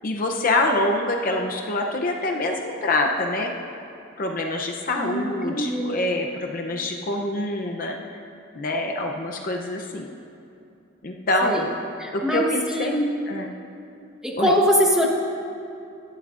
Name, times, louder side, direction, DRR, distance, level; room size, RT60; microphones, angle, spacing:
voice 1, 0.0-3.5 4.2-8.0 8.6-10.1 11.0-11.6 12.1-13.0 13.3-13.5 14.4-14.5, left 2 dB, 45° left, 2 dB, 0.7 m, -25 dB
voice 2, 5.0-5.9 11.4-11.6 12.0-13.0 14.2-15.1, equal, 5° right, -2 dB, 1.1 m, -22 dB
18.0 x 11.5 x 2.5 m, 2.8 s
head